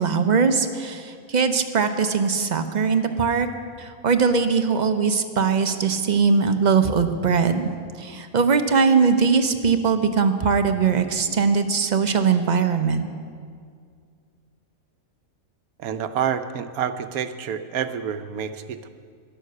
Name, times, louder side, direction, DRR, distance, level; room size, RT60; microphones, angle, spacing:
voice 1, 0.0-3.5 3.8-7.7 8.0-13.1, right 5 dB, 40° right, 8 dB, 0.7 m, -21 dB
voice 2, 15.8-18.9, right 8 dB, 90° right, 10 dB, 1.2 m, -28 dB
12.5 x 11.5 x 6.6 m, 2.2 s
omnidirectional pair, 1.5 m